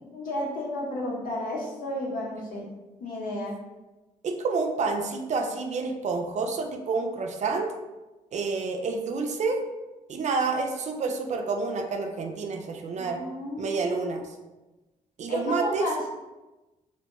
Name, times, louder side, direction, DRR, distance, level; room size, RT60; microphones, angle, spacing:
voice 1, 0.1-2.7 3.0-3.6 13.0-14.2 15.3-16.1, left 1 dB, 85° left, -3 dB, 0.7 m, -32 dB
voice 2, 4.2-7.7 8.3-9.6 10.1-13.2 13.6-14.4 15.2-15.9, right 4 dB, 55° right, 4 dB, 0.4 m, -29 dB
2.3 x 2.1 x 3.0 m, 1.1 s
cardioid pair, 80°, 15 cm